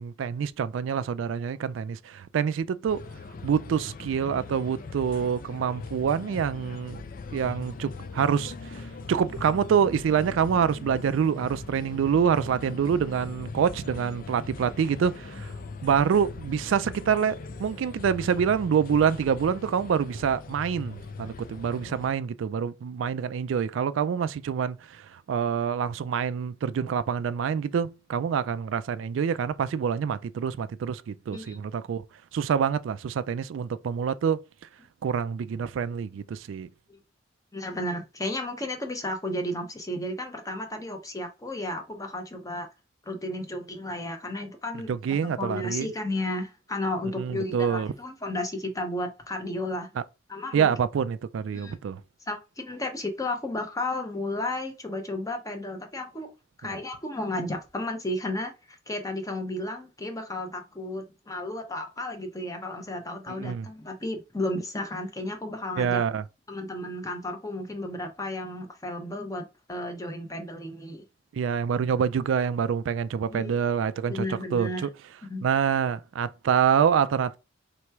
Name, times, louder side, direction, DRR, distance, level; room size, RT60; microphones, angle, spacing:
voice 1, 0.0-3.0 3.4-7.0 7.3-15.5 15.8-32.0 32.3-34.4 35.0-36.7 44.9-45.9 47.2-47.9 50.5-52.0 63.3-63.7 65.8-66.2 71.3-74.3 74.5-74.9 75.4-77.4, right 7 dB, 80° right, 0.3 m, -26 dB
sound 1, 2.9-22.1, left 3 dB, 45° left, 0.4 m, -40 dB
voice 2, 37.5-42.7 43.1-49.9 50.3-50.7 51.5-51.8 52.3-56.3 56.6-66.0 66.5-71.0 73.3-73.5 74.1-74.9 75.2-75.4, left 1 dB, 20° left, 0.8 m, -33 dB
3.3 x 3.0 x 4.5 m
head